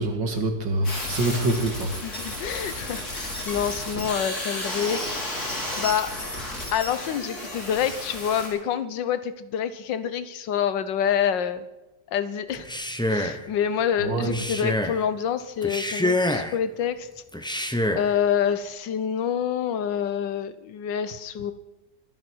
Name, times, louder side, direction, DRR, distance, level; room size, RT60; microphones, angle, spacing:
voice 1, 0.0-2.0 14.0-14.3, right 2 dB, 80° right, 5 dB, 2.5 m, -25 dB
sound 1, 0.8-8.5, left 1 dB, 55° left, 4.5 m, -33 dB
voice 2, 2.0-5.2 5.8-6.2 6.7-11.7 12.1-12.7 13.1-17.1 18.0-21.5, left 8 dB, 75° left, 12 dB, 1.6 m, -27 dB
Male speech man speaking, 12.5-13.4 14.2-15.0 15.6-16.6 17.3-18.1, left 1 dB, 5° left, 0.4 m, -26 dB
24.5 x 10.5 x 4.6 m, 1.0 s
omnidirectional pair, 2.0 m